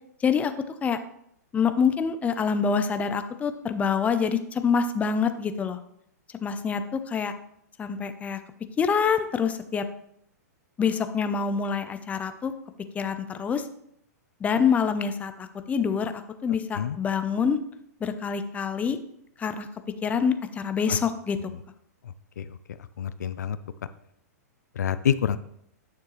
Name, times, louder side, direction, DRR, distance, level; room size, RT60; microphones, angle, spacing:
voice 1, 1.5-5.8 6.4-6.8 7.1-7.3 7.8-8.4 8.8-9.8 10.8-12.5 12.9-13.6 14.4-16.1 16.4-17.6 18.0-19.0 19.4-19.7 20.0-21.4, left 6 dB, 15° left, 9 dB, 0.6 m, -26 dB
voice 2, 22.0-22.6 23.0-23.6 24.8-25.4, left 9 dB, 80° left, 14 dB, 0.4 m, -27 dB
9.2 x 6.7 x 3.2 m, 0.72 s
hypercardioid pair, 125°, 9 cm